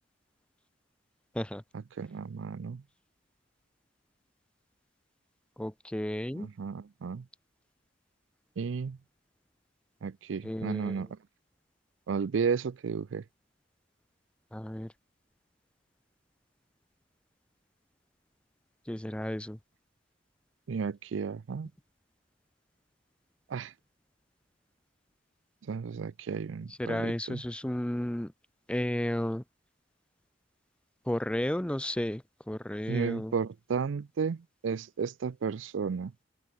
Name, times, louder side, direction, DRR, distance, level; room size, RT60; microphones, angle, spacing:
voice 1, 2.0-2.8 6.3-7.3 8.6-9.0 10.0-11.2 12.1-13.2 20.7-21.7 23.5-23.7 25.7-27.4 32.9-36.1, right 5 dB, 80° right, 0.4 m, -33 dB
voice 2, 5.6-6.5 10.4-11.0 14.5-14.9 18.9-19.6 26.8-28.3 28.7-29.4 31.1-33.3, left 1 dB, 5° left, 0.6 m, -33 dB
open air
head